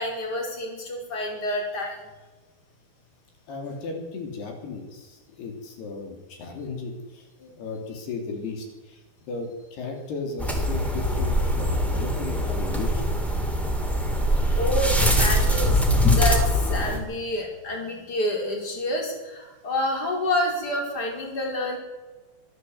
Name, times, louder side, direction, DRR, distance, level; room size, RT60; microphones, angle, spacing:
voice 1, 0.0-2.0 7.4-7.5 14.5-15.8 16.2-21.8, left 1 dB, 25° left, 1 dB, 4.9 m, -28 dB
voice 2, 3.5-7.2 7.6-9.0 9.3-13.2, left 4 dB, 75° left, 3 dB, 5.1 m, -35 dB
sound 1, 10.4-17.0, equal, ahead, 2.8 m, -22 dB
24.5 x 14.0 x 8.0 m, 1.2 s
omnidirectional pair, 4.7 m